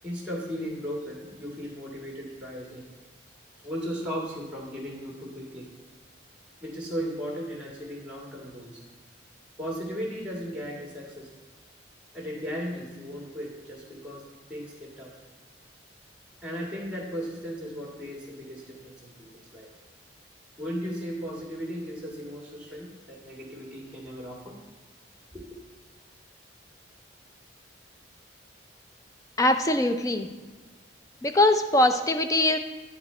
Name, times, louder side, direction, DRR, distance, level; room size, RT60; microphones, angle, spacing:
voice 1, 0.0-2.8 3.6-5.7 6.6-8.8 9.6-11.3 12.1-15.2 16.4-19.7 20.6-24.6 25.3-25.6, equal, 5° right, -2 dB, 1.7 m, -36 dB
voice 2, 29.4-30.3 31.2-32.6, left 1 dB, 15° left, 8 dB, 0.3 m, -22 dB
9.9 x 4.8 x 4.2 m, 1.3 s
head